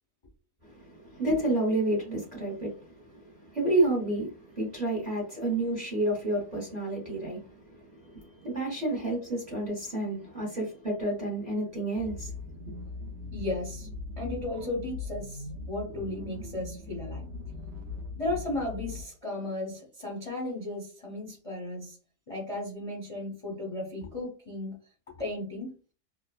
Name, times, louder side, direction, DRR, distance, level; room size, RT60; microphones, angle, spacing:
voice 1, 0.6-12.3, right 2 dB, 35° right, -4 dB, 0.8 m, -30 dB
sound 1, 12.0-19.0, left 3 dB, 85° right, 1.2 m, -40 dB
voice 2, 13.3-13.9 14.2-17.2 18.2-22.0 22.3-24.8 25.1-25.7, left 2 dB, 35° left, -3 dB, 0.5 m, -35 dB
3.1 x 2.1 x 2.3 m, 0.36 s
omnidirectional pair, 1.8 m